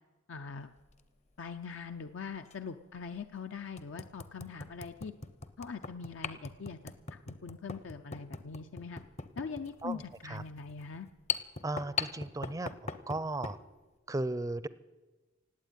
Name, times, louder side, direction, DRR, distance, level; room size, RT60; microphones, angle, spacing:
voice 1, 0.3-0.7 1.4-5.1 5.6-6.8 7.1-9.0 9.4-11.1, left 5 dB, 80° left, 7 dB, 0.6 m, -42 dB
sound 1, 0.8-1.0 2.5-2.6 3.1-3.2 3.8-13.6, left 5 dB, 35° left, 0.7 m, -40 dB
voice 2, 9.8-10.4 11.6-12.7 13.1-13.6 14.1-14.7, right 2 dB, 15° right, 17 dB, 0.4 m, -35 dB
17.5 x 8.7 x 9.1 m, 1.2 s
head